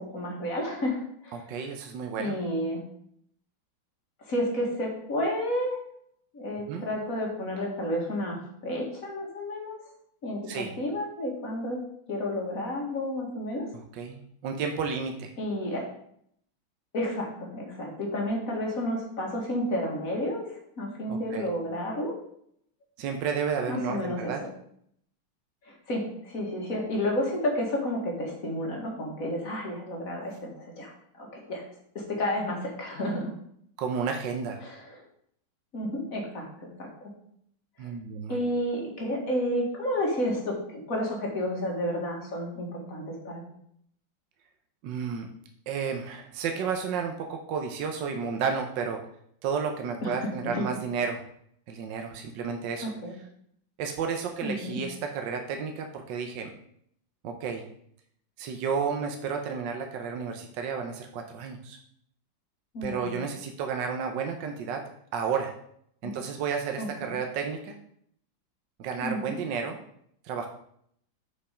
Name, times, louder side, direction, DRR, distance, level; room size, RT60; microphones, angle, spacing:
voice 1, 0.0-1.4 2.2-2.8 4.2-5.8 6.3-9.8 10.2-11.8 12.1-13.7 15.4-15.9 16.9-22.2 23.7-24.5 25.7-31.6 32.0-33.3 34.6-35.0 35.7-37.1 38.3-43.4 50.0-50.7 53.0-53.1 54.4-54.8 62.7-63.2 66.0-66.1 66.8-67.2 69.0-69.3, left 1 dB, 45° left, 0 dB, 1.9 m, -31 dB
voice 2, 1.3-2.3 6.7-6.9 10.5-10.8 13.9-15.3 21.1-21.5 23.0-24.4 33.8-34.6 37.8-38.4 44.8-45.3 45.7-49.0 49.4-51.2 51.7-52.9 53.8-56.5 57.2-57.7 58.4-61.8 62.8-64.8 65.1-65.5 66.0-67.8 68.8-69.8 70.2-70.5, right 6 dB, 65° right, 4 dB, 1.3 m, -32 dB
6.8 x 5.4 x 5.0 m, 0.68 s
omnidirectional pair, 2.3 m